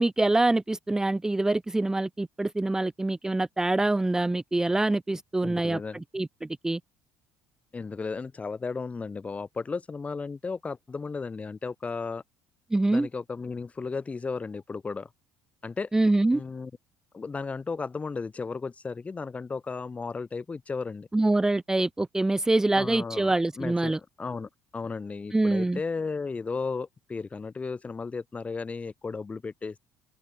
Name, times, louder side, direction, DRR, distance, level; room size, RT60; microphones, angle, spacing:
voice 1, 0.0-5.8 6.1-6.8 12.7-13.1 15.9-16.4 21.1-24.0 25.3-25.8, right 2 dB, 10° right, 0.7 m, -25 dB
voice 2, 5.4-6.0 7.7-12.2 12.9-15.1 15.6-15.9 16.3-16.7 17.1-21.1 22.7-29.8, left 4 dB, 20° left, 3.5 m, -34 dB
cardioid pair, 115°, 6 cm